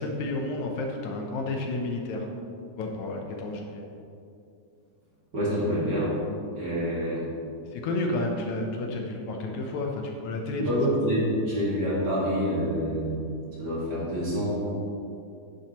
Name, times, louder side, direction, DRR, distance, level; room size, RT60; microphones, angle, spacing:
voice 1, 0.0-2.3 2.8-3.8 7.7-10.7, left 2 dB, 75° left, 2 dB, 2.1 m, -31 dB
voice 2, 5.3-6.1 6.5-7.2 10.5-13.2 13.6-14.7, equal, 35° right, -8 dB, 2.2 m, -27 dB
10.0 x 8.5 x 3.0 m, 2.6 s
omnidirectional pair, 3.5 m